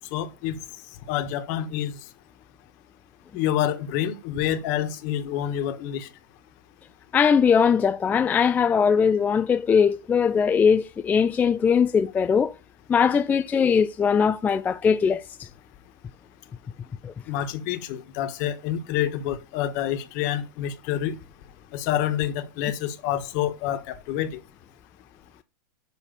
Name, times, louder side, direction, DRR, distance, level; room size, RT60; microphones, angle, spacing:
voice 1, 0.1-0.6 1.1-2.0 3.3-6.1 17.3-21.2 21.7-24.4, left 11 dB, 50° left, 1.4 m, -27 dB
voice 2, 7.1-12.5 12.9-15.5 17.0-17.1, left 6 dB, 15° left, 0.3 m, -20 dB
7.3 x 5.1 x 6.6 m
hypercardioid pair, 130°, 11 cm